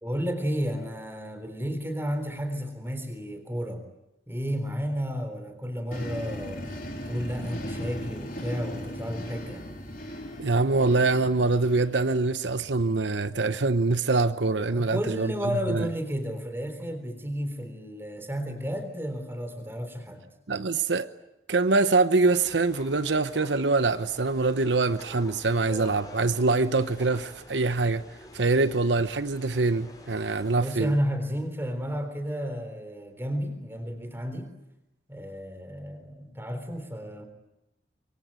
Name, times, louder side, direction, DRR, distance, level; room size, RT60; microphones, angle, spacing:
voice 1, 0.0-3.8 4.3-6.6 7.1-9.6 14.7-20.2 30.6-34.5 35.1-37.3, equal, 15° right, 3.7 m, -32 dB
sound 1, 5.9-12.3, equal, 50° left, 4.5 m, -38 dB
voice 2, 10.4-15.9 20.5-21.1 21.5-28.0 28.3-30.9, right 3 dB, 85° right, 0.9 m, -24 dB
sound 2, 22.2-30.6, left 1 dB, 20° left, 4.5 m, -47 dB
25.5 x 23.0 x 9.0 m
head